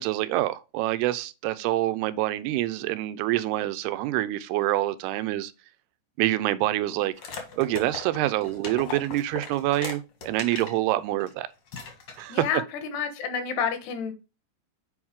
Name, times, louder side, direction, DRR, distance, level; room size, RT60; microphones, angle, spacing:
voice 1, 0.0-5.5 6.2-7.1 7.6-11.5 12.2-12.5, right 15 dB, 85° right, 2.6 m, -26 dB
sound 1, 7.2-10.8 11.2-11.3 11.7-12.4, left 5 dB, 60° left, 1.5 m, -38 dB
voice 2, 12.3-14.1, left 7 dB, 80° left, 3.3 m, -29 dB
7.8 x 4.7 x 3.6 m
omnidirectional pair, 4.7 m